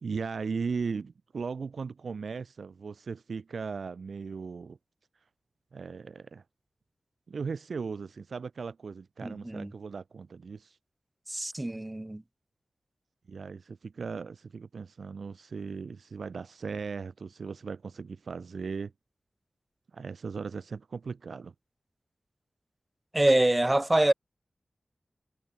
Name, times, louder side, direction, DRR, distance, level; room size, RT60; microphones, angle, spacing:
voice 1, 0.0-4.8 5.7-6.4 7.3-10.8 13.3-18.9 19.9-21.5, right 5 dB, 80° right, 2.0 m, -37 dB
voice 2, 9.2-9.7 11.3-12.2 23.1-24.1, right 1 dB, 20° right, 0.8 m, -25 dB
cardioid pair, 50°, 0 cm